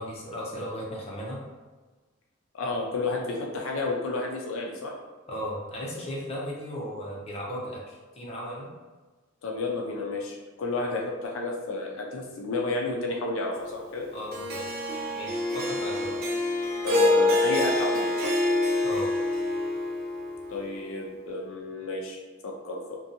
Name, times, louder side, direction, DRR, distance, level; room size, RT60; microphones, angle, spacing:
voice 1, 0.0-1.4 5.3-8.7 14.1-14.6 15.1-16.2 18.8-19.1, equal, 30° left, -4 dB, 0.5 m, -36 dB
voice 2, 2.5-4.9 9.4-14.1 16.8-18.3 20.5-23.0, left 3 dB, 75° left, 0 dB, 0.4 m, -31 dB
Harp, 14.3-20.7, left 2 dB, 50° right, 0.4 m, -26 dB
2.6 x 2.2 x 2.5 m, 1.3 s
head